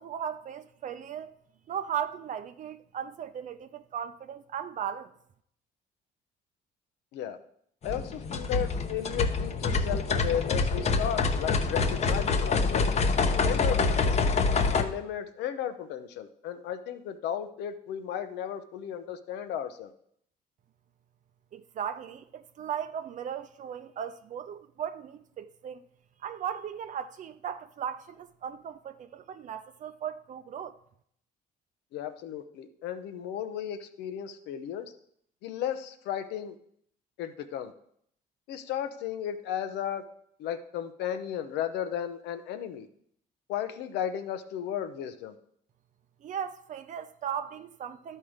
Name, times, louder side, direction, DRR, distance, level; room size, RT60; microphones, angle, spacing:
voice 1, 0.0-1.3 1.7-5.1 21.5-25.8 26.2-30.8 46.2-48.2, right 8 dB, 50° right, 0.5 m, -37 dB
voice 2, 7.8-12.9 13.4-14.3 14.7-19.9 31.9-34.9 35.4-36.5 37.2-37.7 38.5-40.0 40.4-42.9 43.5-45.4, left 9 dB, 85° left, 0.8 m, -34 dB
sound 1, 7.8-14.8, left 4 dB, 40° left, 0.8 m, -26 dB
12.0 x 4.5 x 4.9 m
cardioid pair, 110°, 17 cm